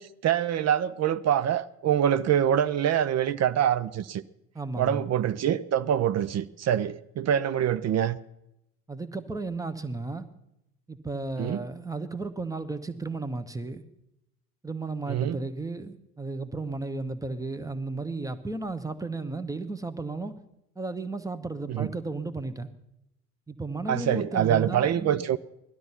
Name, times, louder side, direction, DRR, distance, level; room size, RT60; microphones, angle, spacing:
voice 1, 0.0-4.2 4.8-8.2 11.4-11.6 15.1-15.4 21.7-21.9 23.9-25.4, right 10 dB, 35° right, 0.6 m, -25 dB
voice 2, 4.5-5.1 8.9-10.3 10.9-13.8 14.6-20.4 20.7-22.7 23.5-25.3, right 3 dB, 5° right, 1.1 m, -34 dB
17.5 x 12.0 x 5.7 m
hypercardioid pair, 60°, 45 cm